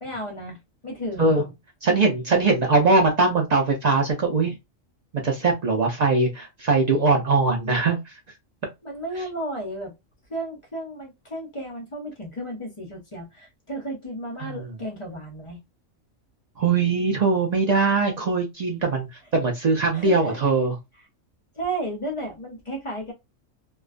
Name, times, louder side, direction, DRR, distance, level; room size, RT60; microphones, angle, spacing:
voice 1, 0.0-1.4 8.8-9.9 10.3-15.6 19.9-20.4 21.5-23.1, right 1 dB, 35° left, 0.5 m, -33 dB
voice 2, 1.8-4.5 5.2-8.0 14.4-14.6 16.6-19.1 19.3-20.8, right 3 dB, 65° right, 0.4 m, -21 dB
2.3 x 2.3 x 2.4 m
omnidirectional pair, 1.4 m